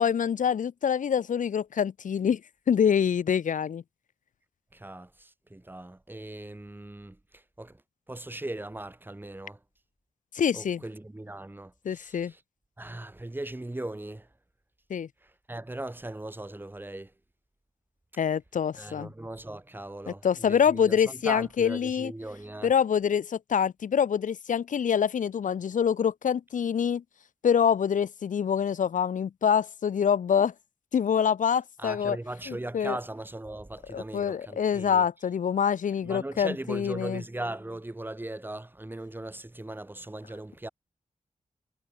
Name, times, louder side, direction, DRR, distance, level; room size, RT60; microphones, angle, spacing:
voice 1, 0.0-2.4 2.7-3.8 10.3-10.8 11.8-12.3 14.9-15.1 18.2-19.1 20.1-22.1 22.6-27.0 27.4-30.5 30.9-32.2 32.5-33.0 33.9-37.2, left 7 dB, 80° left, 0.5 m, -25 dB
voice 2, 4.7-7.8 8.1-9.6 10.5-12.4 12.8-14.3 15.2-17.1 18.8-22.7 31.8-35.0 36.0-40.7, right 1 dB, 15° right, 1.2 m, -39 dB
wide cardioid pair, 110°, 13 cm